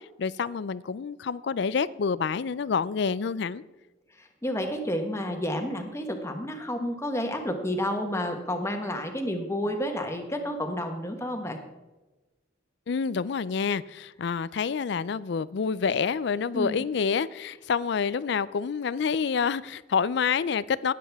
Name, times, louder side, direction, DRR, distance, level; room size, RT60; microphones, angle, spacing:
voice 1, 0.2-3.6 12.9-20.9, left 6 dB, 60° left, 19 dB, 0.4 m, -28 dB
voice 2, 4.2-11.6 16.5-16.8, equal, 15° left, 5 dB, 1.3 m, -30 dB
18.5 x 7.6 x 3.5 m, 1.1 s
head